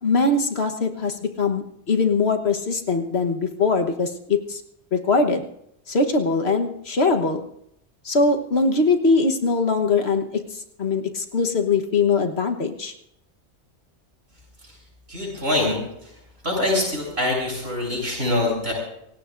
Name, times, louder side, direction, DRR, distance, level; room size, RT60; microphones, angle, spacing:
voice 1, 0.0-4.6 4.9-5.4 5.9-7.4 8.0-10.2 10.5-12.9, left 3 dB, 65° left, 5 dB, 1.5 m, -22 dB
voice 2, 15.1-15.8 16.0-16.1 16.4-18.7, left 2 dB, 65° right, -3 dB, 8.5 m, -24 dB
28.0 x 17.0 x 2.6 m, 0.78 s
omnidirectional pair, 1.2 m